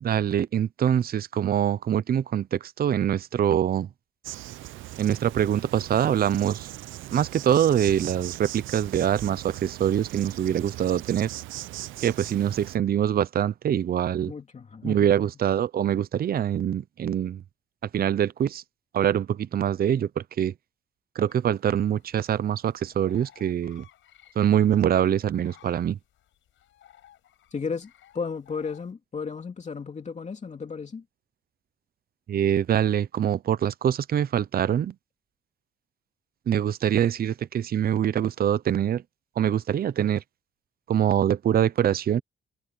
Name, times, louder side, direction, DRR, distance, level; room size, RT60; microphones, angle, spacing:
voice 1, 0.0-3.9 5.0-6.7 7.1-11.3 12.0-14.3 14.8-17.4 17.9-18.6 18.9-20.5 21.1-23.8 24.4-26.0 32.3-34.9 36.5-39.0 39.4-40.2 40.9-42.2, right 10 dB, 50° right, 0.7 m, -24 dB
Insect, 4.2-12.8, right 16 dB, 80° right, 0.6 m, -39 dB
voice 2, 14.3-15.1 27.5-31.0, left 5 dB, 35° left, 2.7 m, -34 dB
sound 1, 21.3-28.9, left 12 dB, 80° left, 5.8 m, -57 dB
cardioid pair, 90°, 20 cm